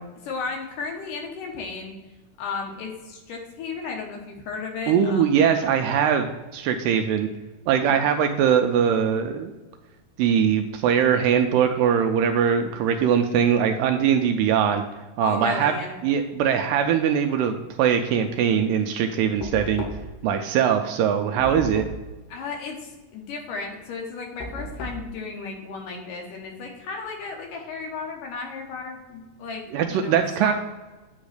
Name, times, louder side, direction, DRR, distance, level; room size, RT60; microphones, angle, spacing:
voice 1, 0.3-1.9 2.4-5.5 7.8-7.9 15.2-16.0 22.3-29.6 29.9-30.5, left 4 dB, 70° left, 1 dB, 2.6 m, -34 dB
voice 2, 4.9-7.3 7.7-9.5 10.2-14.8 15.2-15.7 16.0-19.8 20.2-21.9 29.7-30.5, right 8 dB, 80° right, 6 dB, 2.0 m, -21 dB
Knock, 19.4-20.3 21.4-22.1 24.4-25.1, left 2 dB, 85° left, 2.8 m, -35 dB
8.8 x 3.1 x 6.4 m, 1.2 s
omnidirectional pair, 4.2 m